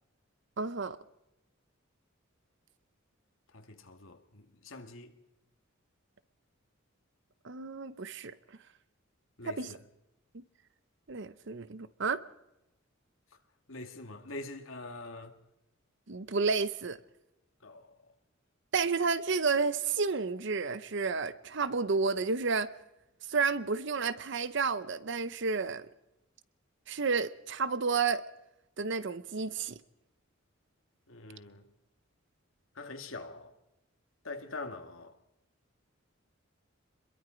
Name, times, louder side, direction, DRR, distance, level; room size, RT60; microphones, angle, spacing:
voice 1, 0.6-1.0 7.4-8.3 9.4-9.7 10.3-10.4 11.1-12.2 16.1-17.0 18.7-22.7 23.3-25.8 26.9-28.2 28.8-29.8, right 4 dB, 60° right, 0.8 m, -31 dB
voice 2, 3.5-5.1 9.4-9.8 13.7-15.4 17.6-18.0 31.1-31.7 32.7-33.5 34.2-35.2, left 2 dB, 70° left, 2.1 m, -44 dB
26.5 x 22.0 x 5.1 m
head